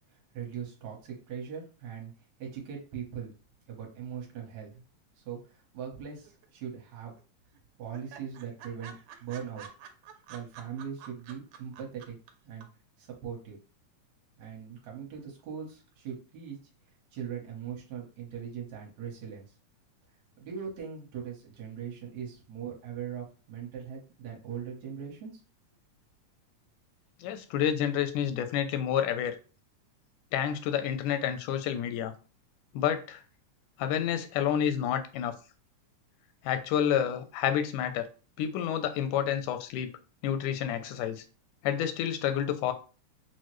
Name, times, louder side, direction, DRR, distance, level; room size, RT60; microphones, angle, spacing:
voice 1, 0.1-2.1 2.4-3.3 3.7-4.8 5.2-7.1 7.8-9.7 10.3-12.2 12.4-12.7 13.0-13.6 14.4-16.7 17.1-19.5 20.4-25.4, right 8 dB, 70° right, 2.1 m, -40 dB
sound 1, 6.2-6.9 7.2-7.3 7.5-7.6 7.9-12.3 12.6-12.7, right 8 dB, 85° right, 2.2 m, -48 dB
voice 2, 27.2-29.4 30.3-32.1 32.7-33.2 33.8-35.3 36.4-38.1 38.4-41.2 41.6-42.7, left 9 dB, 85° left, 2.0 m, -29 dB
6.2 x 2.1 x 3.0 m
omnidirectional pair, 3.5 m